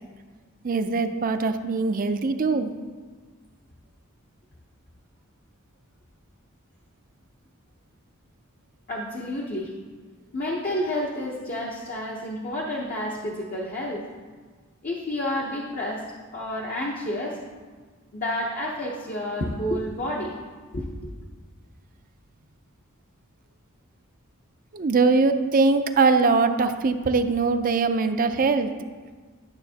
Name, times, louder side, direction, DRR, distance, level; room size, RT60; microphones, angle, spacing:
voice 1, 0.6-2.7 24.7-28.7, right 4 dB, 40° right, 8 dB, 0.5 m, -22 dB
voice 2, 8.9-9.7 10.3-14.0 14.8-16.1 16.3-17.4 18.1-20.3 20.7-21.2, left 1 dB, 40° left, -2 dB, 0.8 m, -30 dB
11.5 x 7.2 x 2.8 m, 1.5 s
head